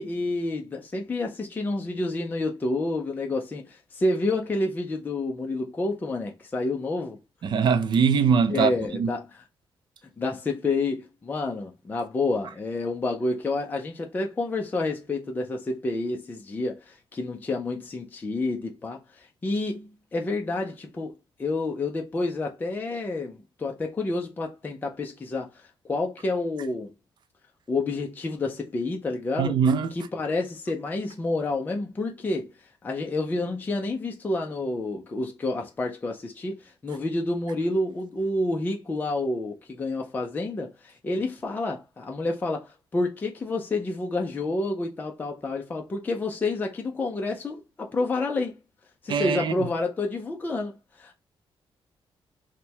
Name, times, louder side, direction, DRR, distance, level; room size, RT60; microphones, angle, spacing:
voice 1, 0.0-7.2 8.5-9.4 10.2-26.9 27.7-29.6 29.9-32.5 32.8-48.6 49.0-51.2, left 2 dB, 20° left, 0.5 m, -29 dB
voice 2, 7.4-8.7 9.0-9.1 29.4-29.9 49.1-49.7, right 6 dB, 50° right, 0.5 m, -22 dB
4.3 x 2.2 x 3.3 m
wide cardioid pair, 175°, 10 cm